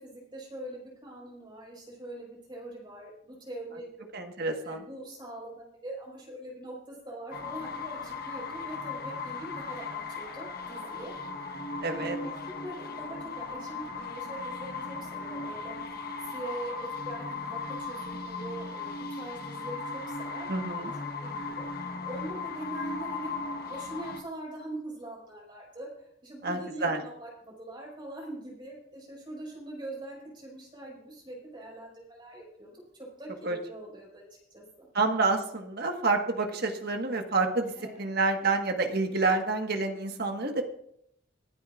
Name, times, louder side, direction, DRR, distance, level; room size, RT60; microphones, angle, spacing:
voice 1, 0.0-4.0 4.6-11.1 11.4-20.5 20.8-20.9 21.2-21.7 22.0-23.3 23.7-34.2 34.5-34.9 37.8-38.1, right 1 dB, 25° right, -4 dB, 5.3 m, -43 dB
voice 2, 4.1-4.8 11.8-12.2 20.5-20.9 26.4-27.0 33.4-33.6 34.9-40.6, right 3 dB, 55° right, 4 dB, 1.5 m, -28 dB
sound 1, 7.3-24.2, left 3 dB, 55° left, 1.3 m, -37 dB
26.5 x 9.4 x 2.5 m, 0.72 s
head